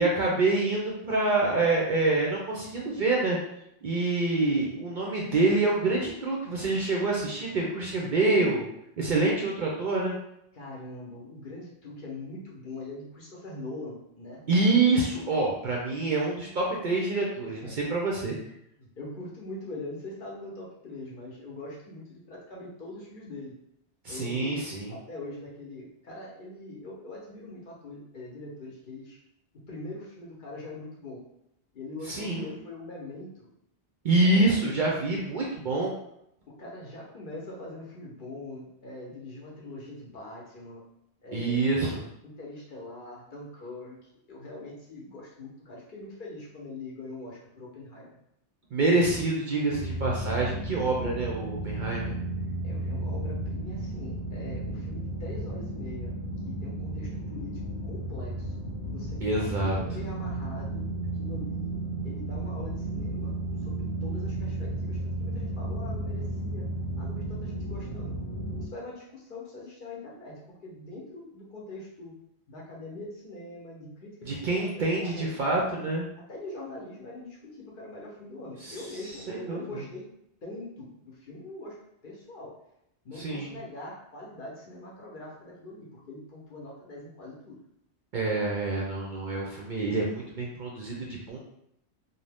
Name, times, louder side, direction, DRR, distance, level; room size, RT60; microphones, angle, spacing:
voice 1, 0.0-3.4 3.8-8.6 9.0-10.1 14.5-18.4 24.0-24.9 32.1-32.5 34.0-35.9 41.3-42.0 48.7-52.1 59.2-59.8 74.3-76.1 78.6-78.8 79.3-79.8 83.2-83.6 88.1-91.4, right 2 dB, 60° right, -3 dB, 0.6 m, -26 dB
voice 2, 10.5-14.4 17.4-18.0 18.8-23.6 24.1-29.2 29.5-31.2 31.7-33.5 34.2-34.5 36.5-40.8 41.2-41.6 42.2-48.1 52.6-56.2 56.4-58.5 58.8-60.9 61.2-61.7 62.0-63.3 63.6-66.7 67.0-68.1 68.6-72.1 72.5-75.6 76.3-80.1 80.4-81.8 82.0-82.6 83.0-87.6, left 2 dB, 55° left, -4 dB, 0.8 m, -42 dB
sound 1, 49.8-68.7, right 2 dB, 75° left, 1.0 m, -33 dB
2.6 x 2.1 x 3.3 m, 0.78 s
omnidirectional pair, 1.2 m